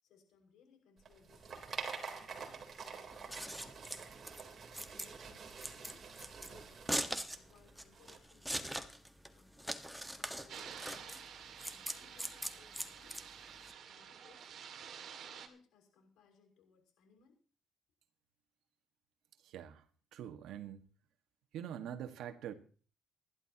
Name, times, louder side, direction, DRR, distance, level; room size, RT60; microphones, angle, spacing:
voice 1, 0.0-4.2 4.9-6.1 6.5-8.9 9.3-11.3 11.6-13.2 13.8-14.5 15.2-17.4, left 6 dB, 90° left, 6.0 m, -66 dB
sound 1, 1.0-8.2, right 5 dB, 45° right, 3.7 m, -47 dB
Scissors, 3.1-13.7, equal, 5° right, 1.5 m, -42 dB
sound 2, 10.5-15.5, right 8 dB, 65° right, 2.3 m, -50 dB
voice 2, 19.4-19.8 20.1-20.8 21.5-22.5, right 10 dB, 85° right, 1.7 m, -44 dB
27.5 x 12.0 x 3.0 m
cardioid pair, 90°, 0 cm